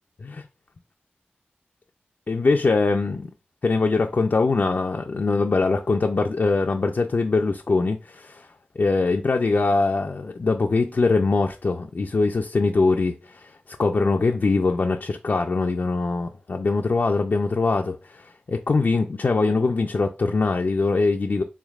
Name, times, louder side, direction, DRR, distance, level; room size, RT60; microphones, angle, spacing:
voice 1, 2.3-3.3 3.6-8.5 8.8-21.4, left 3 dB, 60° left, 0.3 m, -22 dB
3.5 x 3.2 x 2.3 m
cardioid pair, 45°, 4 cm